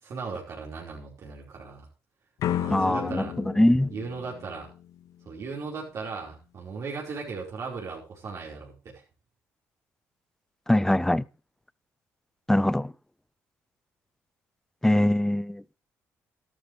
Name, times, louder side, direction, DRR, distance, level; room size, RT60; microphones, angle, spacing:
voice 1, 0.0-1.9 2.6-3.3 3.9-4.7 5.2-9.0, right 4 dB, 60° right, 5.1 m, -37 dB
sound 1, 2.4-5.3, left 11 dB, 75° left, 0.9 m, -33 dB
voice 2, 2.7-3.3 3.6-3.9 10.7-11.2 12.5-12.9 14.8-15.7, left 1 dB, 5° left, 0.6 m, -22 dB
13.5 x 12.0 x 3.4 m
supercardioid pair, 75°, 6 cm